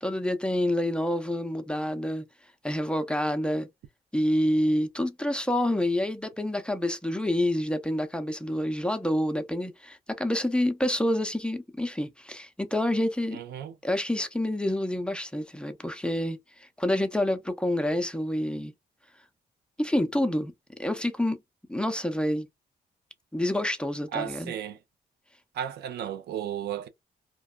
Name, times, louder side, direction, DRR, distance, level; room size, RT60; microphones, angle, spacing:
voice 1, 0.0-2.2 2.6-3.7 4.1-13.4 13.8-18.7 19.8-20.5 20.8-21.4 21.7-22.5 23.3-24.5, left 1 dB, 5° left, 0.4 m, -28 dB
voice 2, 13.3-13.8 24.1-24.8 25.5-26.9, right 9 dB, 80° right, 0.4 m, -34 dB
2.8 x 2.2 x 2.2 m
cardioid pair, 85°, 16 cm